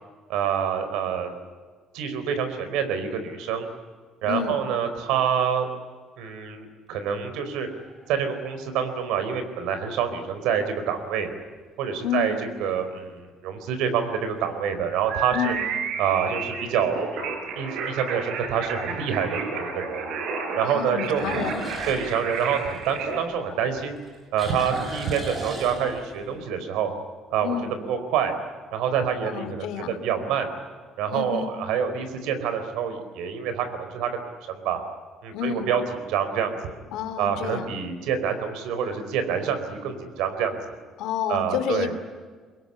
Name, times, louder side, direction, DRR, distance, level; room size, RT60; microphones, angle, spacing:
voice 1, 0.3-1.3 1.9-3.7 4.2-5.7 6.2-7.7 8.1-11.3 11.8-12.3 12.6-15.5 16.0-20.1 20.5-21.3 21.9-23.9 24.3-26.9 27.3-27.6 27.8-28.3 28.7-30.5 31.0-34.8 35.2-35.8 36.1-36.8 37.2-40.7 41.3-41.9, right 7 dB, 85° right, 9 dB, 4.6 m, -27 dB
voice 2, 4.3-4.6 12.0-12.4 15.3-15.6 20.7-21.6 27.4-27.7 29.2-30.0 31.1-31.5 35.3-35.7 36.9-37.7 41.0-42.0, left 8 dB, 65° left, 11 dB, 2.5 m, -29 dB
sound 1, 7.5-8.1 8.8-8.9 14.1-14.6 15.1-15.2 15.7-15.8 16.1-16.2 17.7-17.8 21.1-23.6 24.0-26.3, right 1 dB, 20° right, 5.8 m, -36 dB
sound 2, 15.1-23.2, right 5 dB, 60° right, 5.3 m, -32 dB
25.0 x 21.5 x 9.9 m, 1.5 s
cardioid pair, 175°, 0 cm